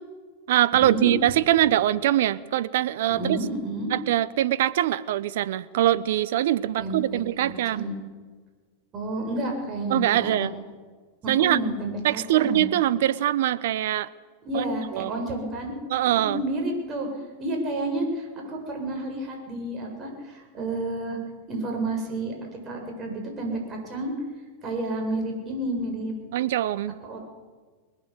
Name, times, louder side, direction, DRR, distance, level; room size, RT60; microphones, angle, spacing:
voice 1, 0.5-3.4 3.9-7.9 9.9-10.5 11.3-11.6 12.0-14.1 14.5-14.6 14.9-15.1 15.9-16.4 26.3-27.0, right 13 dB, 70° right, 17 dB, 0.9 m, -23 dB
voice 2, 3.1-3.9 6.8-7.9 8.9-10.5 11.2-12.7 14.4-15.7 16.1-17.1 17.4-21.2 21.5-22.3 22.6-24.1 24.6-26.2 27.0-27.2, right 1 dB, 35° right, 1 dB, 7.6 m, -30 dB
22.5 x 19.5 x 8.2 m, 1.5 s
hypercardioid pair, 105°, 0 cm